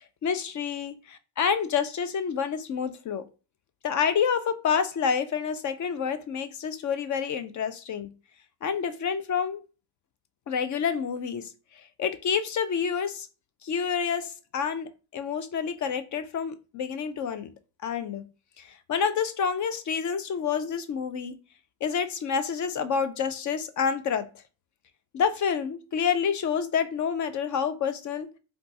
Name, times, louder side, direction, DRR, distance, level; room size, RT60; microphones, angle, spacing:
voice 1, 0.2-0.9 1.4-3.2 3.8-8.1 8.6-9.6 10.5-13.3 13.6-17.5 17.8-18.2 18.6-21.3 21.8-24.3 25.1-28.3, left 7 dB, 40° left, 0.5 m, -28 dB
3.7 x 2.3 x 2.7 m
supercardioid pair, 85°, 48 cm